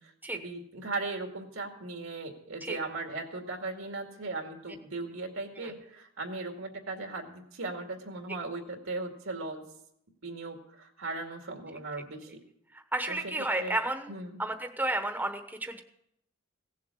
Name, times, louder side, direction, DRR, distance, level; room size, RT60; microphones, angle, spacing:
voice 1, 0.0-9.6 10.2-12.3 13.1-13.8 14.1-14.4, right 3 dB, 80° right, 3 dB, 2.3 m, -38 dB
voice 2, 12.9-14.1 14.4-15.8, right 2 dB, 10° right, 6 dB, 1.0 m, -31 dB
17.0 x 7.4 x 7.3 m, 0.76 s
head